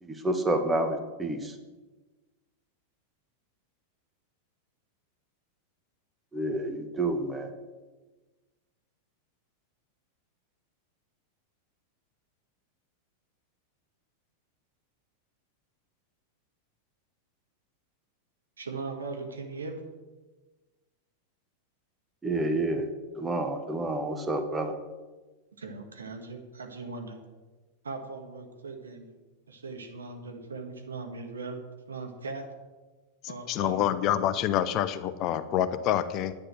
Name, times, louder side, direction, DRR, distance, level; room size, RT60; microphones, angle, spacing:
voice 1, 0.0-1.6 6.3-7.5 22.2-22.9 23.1-24.7, right 1 dB, 10° right, 6 dB, 1.5 m, -29 dB
voice 2, 18.6-19.8 25.6-27.2 27.9-29.1 29.5-31.6 31.9-32.5 33.3-34.2, right 3 dB, 70° right, 4 dB, 1.8 m, -39 dB
voice 3, 33.2-36.3, left 11 dB, 40° left, 12 dB, 0.7 m, -27 dB
10.0 x 10.0 x 6.3 m, 1.2 s
figure-of-eight pair, 90°, 0 cm